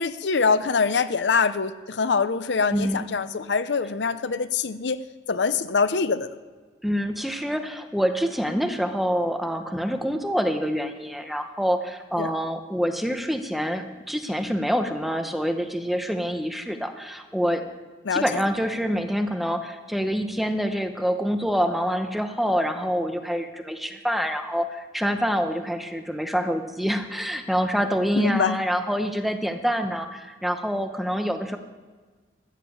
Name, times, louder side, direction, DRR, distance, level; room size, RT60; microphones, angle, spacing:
voice 1, 0.0-5.0 5.3-6.3 12.2-12.3 18.0-18.4 28.1-28.6, left 5 dB, 85° left, 13 dB, 0.6 m, -24 dB
voice 2, 2.7-3.0 6.8-17.6 18.1-31.6, equal, ahead, 6 dB, 0.9 m, -26 dB
14.0 x 7.3 x 7.2 m, 1.4 s
head